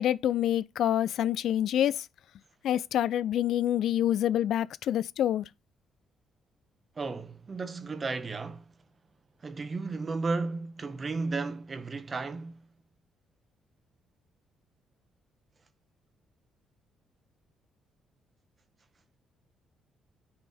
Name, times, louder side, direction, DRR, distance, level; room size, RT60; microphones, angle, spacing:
voice 1, 0.0-2.1 2.6-5.4, left 11 dB, 75° left, 0.3 m, -27 dB
voice 2, 7.0-8.6 9.4-12.6, right 3 dB, 35° right, 1.0 m, -34 dB
9.6 x 3.4 x 4.2 m
cardioid pair, 90°, 0 cm